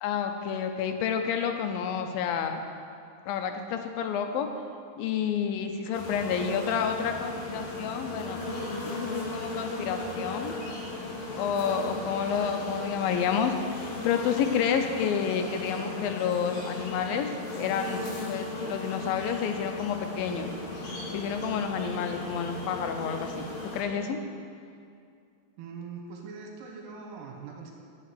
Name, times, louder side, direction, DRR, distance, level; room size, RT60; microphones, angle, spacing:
voice 1, 0.0-2.6 3.3-4.5 5.0-8.4 8.8-10.6 11.3-20.5 21.1-23.5 23.7-24.2, left 7 dB, 80° left, 6 dB, 2.4 m, -29 dB
sound 1, 5.9-23.8, left 2 dB, 50° left, 2.7 m, -36 dB
voice 2, 25.6-27.7, right 5 dB, 70° right, 1 dB, 2.5 m, -42 dB
9.3 x 5.8 x 7.7 m, 2.4 s
omnidirectional pair, 4.2 m